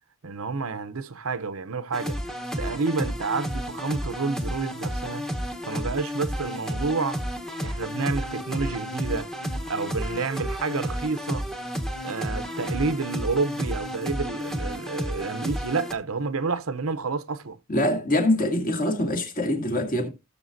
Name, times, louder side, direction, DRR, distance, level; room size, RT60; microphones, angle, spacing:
voice 1, 0.2-2.2 2.6-5.3 5.7-7.2 7.6-9.3 9.7-11.5 12.0-17.6, right 4 dB, 70° right, 0.8 m, -29 dB
sound 1, 1.9-15.9, equal, ahead, 1.1 m, -31 dB
voice 2, 17.7-20.1, left 1 dB, 40° left, 2.2 m, -24 dB
17.5 x 6.8 x 2.7 m
head